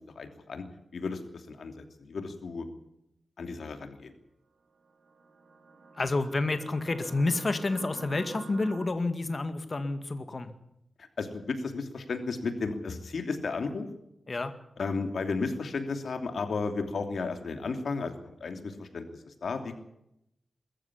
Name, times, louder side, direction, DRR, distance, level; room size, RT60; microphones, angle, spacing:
voice 1, 0.1-0.6 0.9-2.7 3.4-4.1 11.0-13.9 14.8-19.8, left 4 dB, 75° left, 6 dB, 3.0 m, -34 dB
sound 1, 4.8-8.9, right 3 dB, 70° right, 4.0 m, -48 dB
voice 2, 6.0-10.5 14.3-14.5, left 2 dB, 35° left, 9 dB, 2.1 m, -29 dB
22.5 x 14.0 x 9.9 m, 0.80 s
wide cardioid pair, 125°, 0 cm